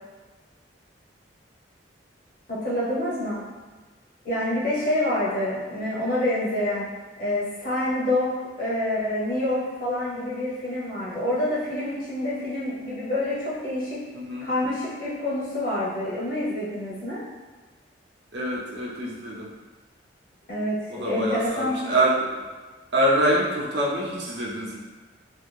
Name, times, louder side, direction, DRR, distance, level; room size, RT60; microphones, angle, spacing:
voice 1, 2.5-3.4 4.2-6.9 7.2-8.3 8.6-14.0 14.4-17.2 20.5-21.9, left 1 dB, 50° left, -8 dB, 1.1 m, -27 dB
voice 2, 14.1-14.5 18.3-19.5 20.9-22.5 22.9-24.8, right 1 dB, 65° right, -4 dB, 0.6 m, -25 dB
2.5 x 2.3 x 3.5 m, 1.3 s
head